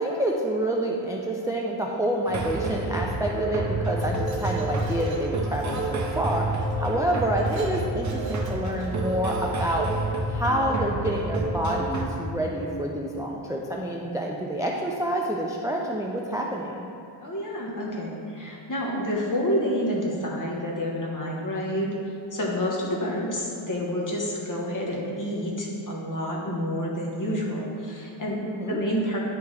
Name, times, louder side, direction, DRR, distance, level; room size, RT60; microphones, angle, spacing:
voice 1, 0.0-9.9 10.3-16.8 28.4-28.8, right 1 dB, 10° right, -1 dB, 0.3 m, -28 dB
sound 1, 2.2-12.1, right 2 dB, 40° right, 0.7 m, -29 dB
Glass, 3.7-6.0 6.6-6.8 7.2-9.2, right 3 dB, 75° right, 0.9 m, -49 dB
voice 2, 17.2-21.9 22.3-29.2, equal, 40° left, -3 dB, 1.1 m, -29 dB
9.8 x 3.4 x 3.2 m, 2.6 s
wide cardioid pair, 135°, 47 cm